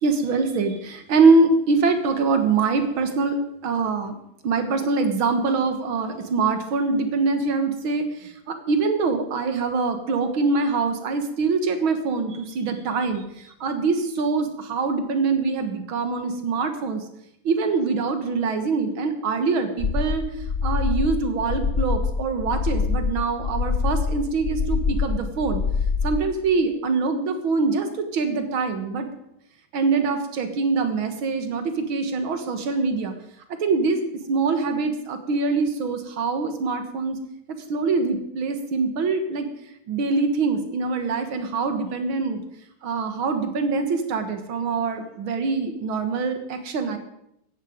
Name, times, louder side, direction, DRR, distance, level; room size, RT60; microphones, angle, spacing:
voice 1, 0.0-4.1 4.4-17.1 17.4-25.6 26.0-29.1 29.7-33.1 33.6-34.0 34.3-37.2 37.7-39.5 39.9-42.4 42.8-47.0, right 4 dB, 90° right, 7 dB, 2.3 m, -24 dB
sound 1, 19.8-26.2, left 5 dB, 60° left, 0.6 m, -25 dB
17.5 x 14.0 x 5.2 m, 0.78 s
omnidirectional pair, 2.2 m